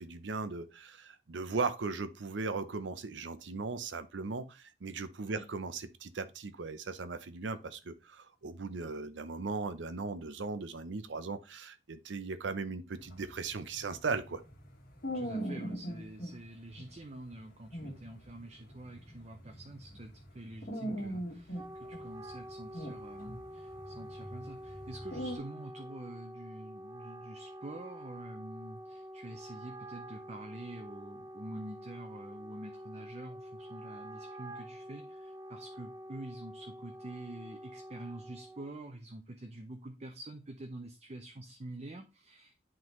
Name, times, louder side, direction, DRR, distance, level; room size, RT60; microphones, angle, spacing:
voice 1, 0.0-14.4, right 4 dB, 80° right, 0.7 m, -38 dB
sound 1, 13.0-16.3 16.7-16.8 17.3-17.4 17.6-20.3 20.6-22.4 22.7-25.4, equal, 50° left, 1.8 m, -40 dB
voice 2, 15.1-42.6, right 1 dB, 35° right, 0.7 m, -47 dB
Wind instrument woodwind instrument, 21.3-38.8, equal, 20° right, 0.3 m, -47 dB
10.5 x 3.8 x 3.1 m
head